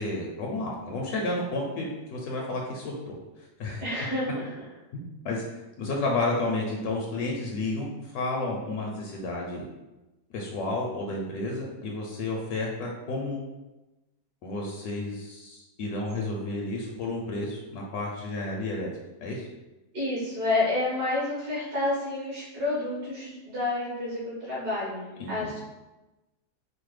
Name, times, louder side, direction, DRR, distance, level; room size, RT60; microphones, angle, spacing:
voice 1, 0.0-3.8 4.9-5.4 5.8-9.6 10.3-13.4 14.4-18.9 19.2-19.4 25.2-25.5, left 2 dB, 75° left, -1 dB, 1.1 m, -31 dB
voice 2, 3.8-4.5 19.9-25.6, left 2 dB, 70° right, -8 dB, 2.1 m, -29 dB
4.9 x 2.0 x 3.2 m, 1.1 s
omnidirectional pair, 1.7 m